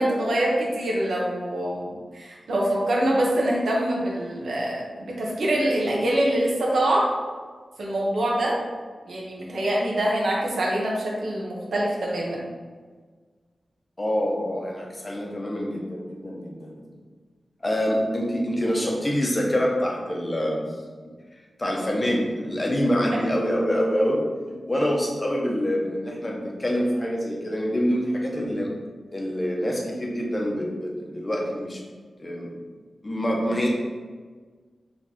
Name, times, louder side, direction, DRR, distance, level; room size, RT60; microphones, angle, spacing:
voice 1, 0.0-7.0 7.8-8.5 9.1-12.4 23.1-23.2, right 1 dB, 90° right, -3 dB, 1.0 m, -24 dB
voice 2, 14.0-16.8 17.6-20.7 21.0-21.1 21.6-24.3 24.7-28.7 29.1-31.8 32.2-32.6 33.0-33.7, equal, 25° left, -1 dB, 0.7 m, -26 dB
4.8 x 3.2 x 2.9 m, 1.5 s
wide cardioid pair, 130°, 0 cm